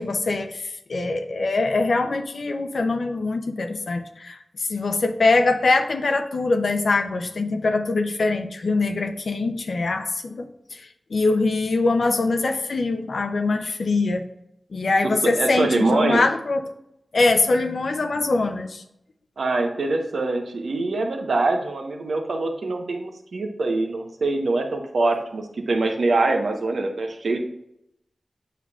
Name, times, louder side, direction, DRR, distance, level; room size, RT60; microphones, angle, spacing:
voice 1, 0.0-14.2 14.7-16.6 17.1-18.8, left 3 dB, 75° left, 6 dB, 0.6 m, -23 dB
voice 2, 15.0-16.2 19.4-27.4, right 2 dB, 85° right, 3 dB, 0.9 m, -24 dB
8.1 x 5.7 x 2.4 m, 0.80 s
wide cardioid pair, 65°, 0 cm